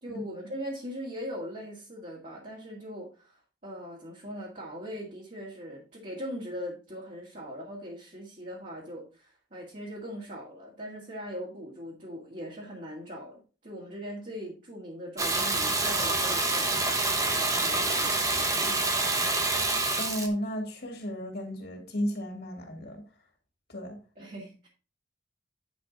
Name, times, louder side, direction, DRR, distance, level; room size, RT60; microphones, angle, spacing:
voice 1, 0.0-19.4 24.2-24.7, equal, 40° right, 1.9 m, -40 dB
Water tap faucet / Bathtub (filling or washing), 15.2-20.3, right 2 dB, 15° right, 1.0 m, -27 dB
voice 2, 19.9-23.0 23.7-24.0, equal, 55° left, 2.5 m, -33 dB
9.9 x 5.0 x 3.9 m
head